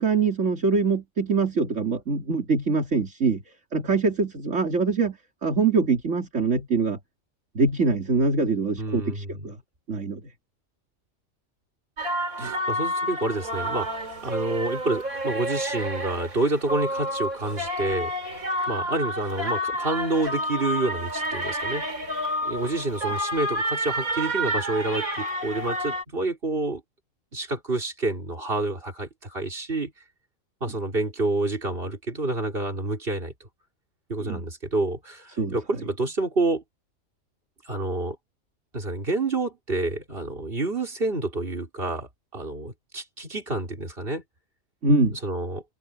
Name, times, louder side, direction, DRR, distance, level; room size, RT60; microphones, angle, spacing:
voice 1, 0.0-3.4 3.7-7.0 7.5-9.6 9.9-10.2 12.4-12.5 34.2-34.4 35.4-35.6 44.8-45.2, right 4 dB, 60° right, 3.1 m, -24 dB
voice 2, 8.8-9.5 12.4-18.1 18.7-21.9 22.4-26.8 27.3-29.9 30.6-33.3 34.1-36.6 37.6-38.2 38.7-44.2 45.2-45.6, right 2 dB, 40° right, 4.6 m, -28 dB
sound 1, 12.0-26.0, equal, 90° right, 4.3 m, -29 dB
omnidirectional pair, 1.4 m